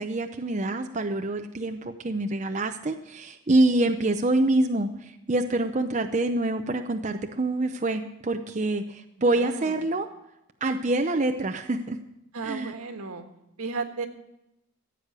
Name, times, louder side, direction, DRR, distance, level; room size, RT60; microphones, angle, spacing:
voice 1, 0.0-10.1 10.6-12.0 12.4-12.7, right 2 dB, 30° right, 6 dB, 0.6 m, -26 dB
voice 2, 9.3-9.9 12.3-13.2 13.6-14.1, right 4 dB, 85° right, 6 dB, 1.6 m, -34 dB
15.0 x 8.3 x 6.7 m, 0.89 s
head